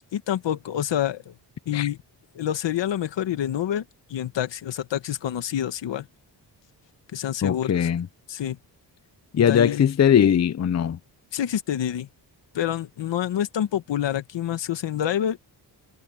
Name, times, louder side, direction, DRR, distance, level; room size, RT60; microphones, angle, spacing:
voice 1, 0.1-1.3 1.7-2.0 2.4-3.8 4.1-6.1 7.1-7.9 8.3-8.6 9.4-9.9 11.3-12.1 12.5-15.4, left 10 dB, 80° left, 1.6 m, -27 dB
voice 2, 7.4-8.1 9.3-11.0, left 8 dB, 40° left, 0.7 m, -20 dB
cardioid pair, 100°, 43 cm